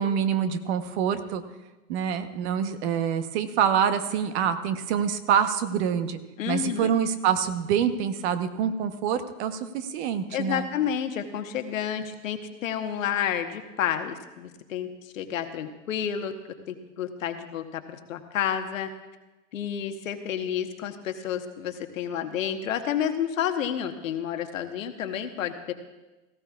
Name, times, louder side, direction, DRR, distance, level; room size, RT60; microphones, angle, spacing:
voice 1, 0.0-1.4 1.9-6.2 6.5-10.7, right 8 dB, 55° right, 10 dB, 1.1 m, -26 dB
voice 2, 6.4-6.9 10.3-16.3 16.7-18.9 19.5-25.7, left 9 dB, 75° left, 7 dB, 1.3 m, -30 dB
17.5 x 15.0 x 2.4 m, 1.1 s
hypercardioid pair, 105°, 40 cm